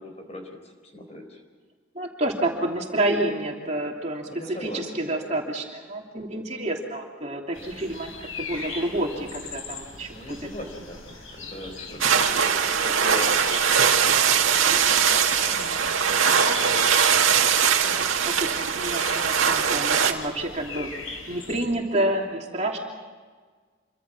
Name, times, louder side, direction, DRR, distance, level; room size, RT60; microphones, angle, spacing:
voice 1, 0.0-1.4 4.2-5.4 10.1-15.6 15.9-17.4, equal, 35° left, 4 dB, 4.5 m, -40 dB
voice 2, 1.9-4.3 4.6-10.1 15.5-15.9 17.8-20.9 21.3-22.8, right 1 dB, 35° right, 0 dB, 3.0 m, -29 dB
sound 1, 7.5-21.7, left 4 dB, 80° left, 5.6 m, -39 dB
sound 2, 12.0-20.1, right 7 dB, 85° right, 2.1 m, -21 dB
27.5 x 24.5 x 6.2 m, 1.5 s
head